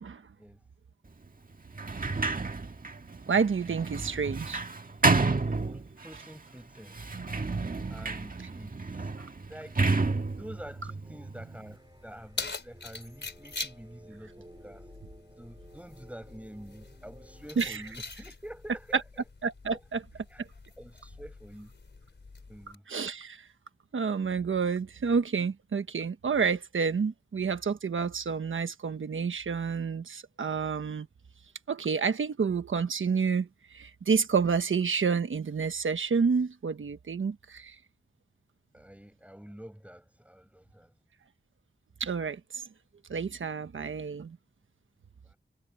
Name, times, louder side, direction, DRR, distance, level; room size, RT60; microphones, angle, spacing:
Sliding door, 1.7-6.2 6.9-11.7, right 3 dB, 45° right, 1.7 m, -30 dB
voice 1, 3.3-4.6 17.6-17.8 19.4-20.0 20.4-20.5 22.9-23.4 23.9-31.1 31.7-37.7 42.0-42.6 43.1-44.4, right 5 dB, 85° right, 1.2 m, -29 dB
voice 2, 5.7-7.0 7.9-9.1 9.5-9.8 10.2-14.9 15.4-19.2 19.7-19.8 20.1-20.4 20.8-21.7 22.5-22.8 38.7-40.9 45.2-45.4, equal, 5° right, 7.2 m, -47 dB
sound 1, 11.0-17.9, right 1 dB, 25° right, 4.9 m, -55 dB
Keys jangling, 11.7-22.7, left 3 dB, 65° left, 4.1 m, -44 dB
wide cardioid pair, 55°, 20 cm